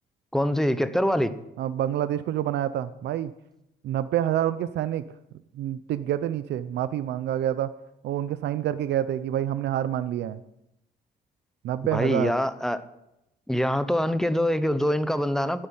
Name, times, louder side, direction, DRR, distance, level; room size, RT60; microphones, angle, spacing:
voice 1, 0.3-1.3 11.9-12.8 13.5-15.7, equal, 5° left, 12 dB, 1.0 m, -24 dB
voice 2, 1.6-3.3 3.8-5.0 5.6-7.7 8.0-10.4 11.6-12.3, right 11 dB, 80° right, 14 dB, 0.7 m, -27 dB
12.0 x 10.0 x 9.4 m, 0.86 s
cardioid pair, 110°, 17 cm